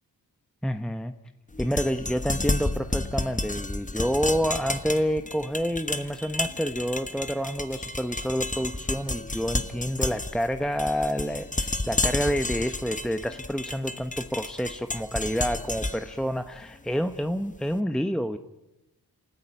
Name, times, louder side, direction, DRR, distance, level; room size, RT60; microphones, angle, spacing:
voice 1, 0.6-1.1 1.6-18.4, equal, ahead, 8 dB, 0.9 m, -28 dB
sound 1, 1.5-17.6, left 2 dB, 20° left, 1.3 m, -32 dB
sound 2, 7.7-9.4 9.6-9.9 11.2-13.0, left 4 dB, 75° left, 3.3 m, -53 dB
28.5 x 15.0 x 9.1 m, 0.97 s
wide cardioid pair, 80°, 40 cm